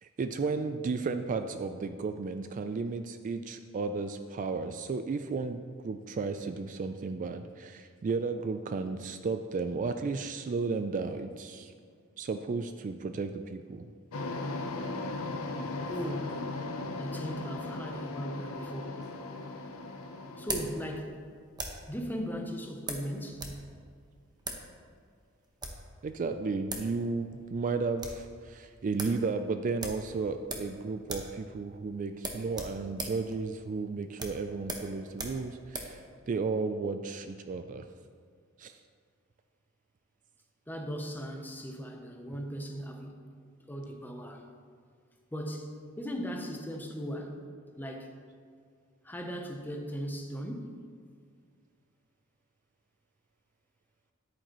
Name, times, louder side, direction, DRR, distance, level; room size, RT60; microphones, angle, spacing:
voice 1, 0.0-11.7 12.2-13.9 26.0-37.9 38.6-38.8, right 4 dB, 35° right, 8 dB, 0.3 m, -34 dB
sound 1, 14.1-21.0, left 2 dB, 70° left, 0.7 m, -37 dB
voice 2, 15.9-16.4 17.0-19.0 20.4-21.2 21.9-23.5 40.7-43.2 43.7-44.4 45.3-47.4 47.8-48.1 49.0-50.8, equal, 10° left, 3 dB, 0.7 m, -38 dB
sound 2, 19.0-21.9 22.9-23.6 23.9-24.0 24.4-24.7 25.4-25.9 26.4-26.5 26.7-26.9 27.2-27.3 27.7-28.3 28.6-28.7 29.0-29.2 29.8-30.8 31.0-31.4 31.6-31.8 32.2-36.0, right 2 dB, 20° right, 0.9 m, -39 dB
10.5 x 8.7 x 3.0 m, 2.1 s
head